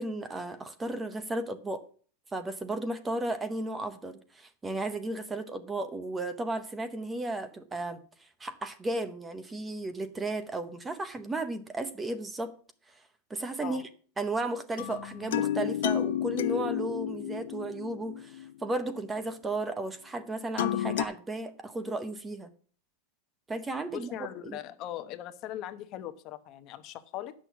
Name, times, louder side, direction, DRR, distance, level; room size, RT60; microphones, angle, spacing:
voice 1, 0.0-1.9 2.3-12.6 12.9-13.0 13.3-13.9 14.2-22.5 23.5-24.1 24.4-24.6, right 2 dB, 10° right, 11 dB, 0.8 m, -34 dB
sound 1, 14.8-18.7 20.6-21.0, left 11 dB, 85° left, 0.6 m, -31 dB
voice 2, 23.9-27.3, left 12 dB, 40° left, 10 dB, 0.9 m, -40 dB
9.8 x 6.4 x 7.0 m, 0.44 s
supercardioid pair, 155°, 0 cm